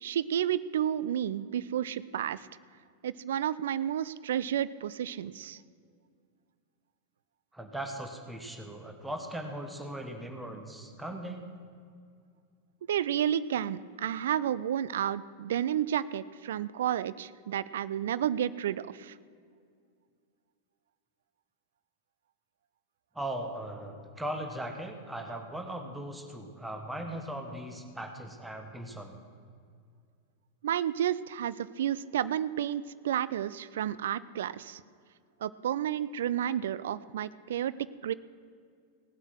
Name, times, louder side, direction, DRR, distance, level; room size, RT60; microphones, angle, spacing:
voice 1, 0.0-2.5 3.0-5.6 12.9-19.1 30.6-34.8 35.4-37.7 38.0-38.1, right 10 dB, 60° right, 17 dB, 0.4 m, -31 dB
voice 2, 7.5-11.5 23.1-29.2, right 1 dB, 5° right, 4 dB, 1.4 m, -39 dB
17.5 x 7.8 x 6.2 m, 2.2 s
figure-of-eight pair, 90°, 0 cm